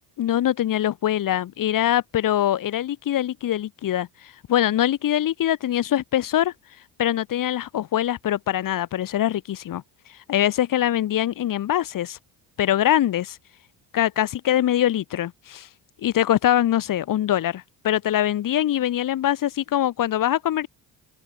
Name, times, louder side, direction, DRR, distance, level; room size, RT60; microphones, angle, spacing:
voice 1, 0.2-6.5 7.0-9.8 10.1-12.2 12.6-13.4 13.9-15.7 16.0-20.7, left 12 dB, 50° left, 1.2 m, -23 dB
open air
supercardioid pair, 85°, 42 cm